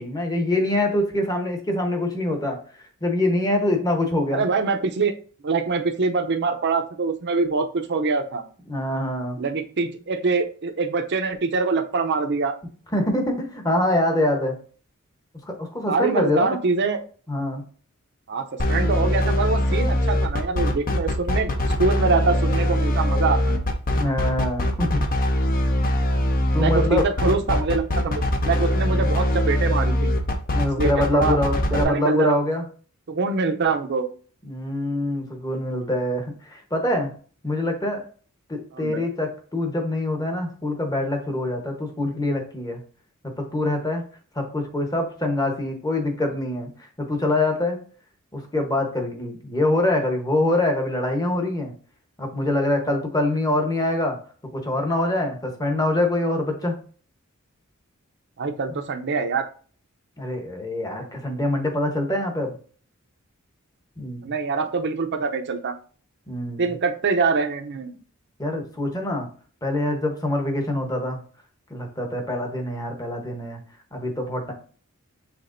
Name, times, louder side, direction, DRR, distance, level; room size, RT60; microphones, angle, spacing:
voice 1, 0.0-2.6 3.0-4.4 8.7-9.4 12.9-14.5 15.5-16.6 17.3-17.6 23.9-25.0 26.5-27.1 30.5-32.6 34.4-37.1 37.4-38.0 38.5-42.8 43.2-44.0 44.3-46.7 47.0-47.8 48.3-51.7 52.2-54.2 54.5-56.8 58.7-58.8 60.2-62.6 64.0-64.3 66.3-66.7 68.4-69.3 69.6-71.2 71.7-73.6 73.9-74.5, left 1 dB, 15° left, 3 dB, 1.0 m, -24 dB
voice 2, 4.3-5.1 5.4-8.5 9.4-12.5 15.9-17.0 18.3-21.5 21.8-23.7 26.6-30.1 30.8-31.4 31.7-32.4 33.1-34.1 38.7-39.0 58.4-59.5 64.2-65.8 66.6-68.0, right 4 dB, 55° right, 6 dB, 0.6 m, -24 dB
sound 1, 18.6-31.8, left 1 dB, 40° left, 0.6 m, -22 dB
5.9 x 3.5 x 2.6 m, 0.42 s
head